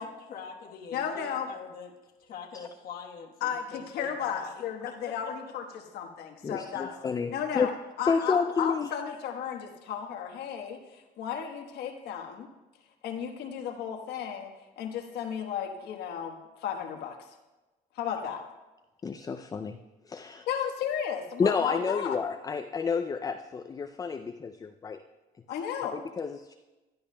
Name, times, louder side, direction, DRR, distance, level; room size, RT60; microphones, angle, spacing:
voice 1, 0.0-4.6 5.1-5.3 6.8-7.1, left 6 dB, 60° left, 1 dB, 1.2 m, -44 dB
voice 2, 0.9-1.5 3.4-6.9 7.3-7.7 8.0-12.5 13.0-17.3 17.9-18.4 20.5-22.2 25.5-26.0, left 8 dB, 80° left, 4 dB, 1.2 m, -34 dB
voice 3, 6.4-7.7 8.1-8.9 19.0-19.8 20.1-20.5 21.4-25.0 25.9-26.5, left 5 dB, 20° left, 7 dB, 0.4 m, -30 dB
15.5 x 10.5 x 2.2 m, 1.1 s
cardioid pair, 110°, 17 cm